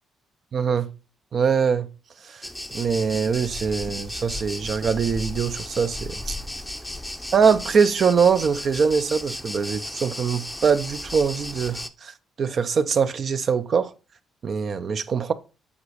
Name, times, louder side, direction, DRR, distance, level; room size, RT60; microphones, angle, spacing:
voice 1, 0.5-0.9 1.3-1.9 2.2-2.4 2.7-6.3 7.3-13.9 14.4-15.3, right 6 dB, 50° right, 0.6 m, -23 dB
sound 1, 2.4-11.9, left 1 dB, 5° left, 0.6 m, -35 dB
7.4 x 4.1 x 4.8 m
cardioid pair, 90°, 0 cm